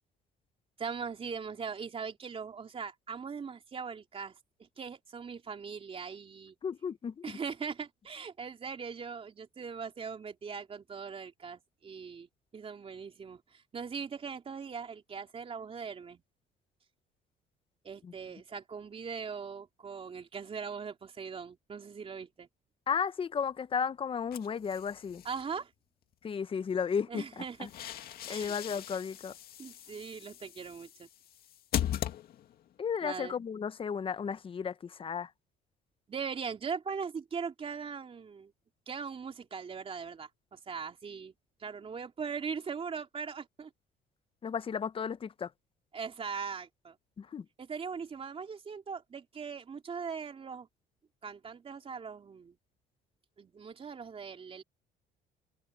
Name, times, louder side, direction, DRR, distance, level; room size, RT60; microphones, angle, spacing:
voice 1, 0.8-4.3 4.6-6.6 7.2-16.2 17.8-22.5 25.2-25.7 27.1-27.7 28.3-28.5 29.6-31.1 33.0-33.3 36.1-38.5 38.9-41.3 41.6-43.7 45.9-47.0 47.6-50.7 51.2-52.6 53.4-54.6, right 6 dB, 35° right, 3.6 m, -40 dB
voice 2, 6.6-7.4 18.0-18.1 22.9-25.2 26.2-27.7 28.3-29.3 31.8-31.9 32.8-35.3 44.4-45.5 47.2-47.4, left 6 dB, 30° left, 0.8 m, -34 dB
sound 1, 24.3-25.4 27.3-32.7, left 11 dB, 65° left, 2.2 m, -39 dB
open air
cardioid pair, 110°, 17 cm